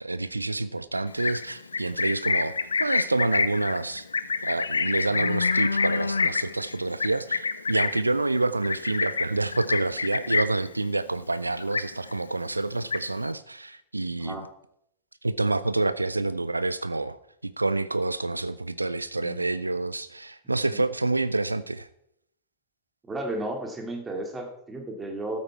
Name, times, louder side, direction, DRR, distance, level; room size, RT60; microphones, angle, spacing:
voice 1, 0.0-4.1 4.4-14.5 15.2-17.2 17.4-21.9, right 2 dB, 80° right, 16 dB, 0.3 m, -28 dB
Livestock farm animals working animals, 1.1-10.7 11.0-11.3 11.6-12.3 12.6-13.3, left 4 dB, 75° left, 0.5 m, -27 dB
voice 2, 23.0-25.4, right 1 dB, 15° right, 3 dB, 2.6 m, -34 dB
13.5 x 8.3 x 4.5 m, 0.73 s
figure-of-eight pair, 90°, 0 cm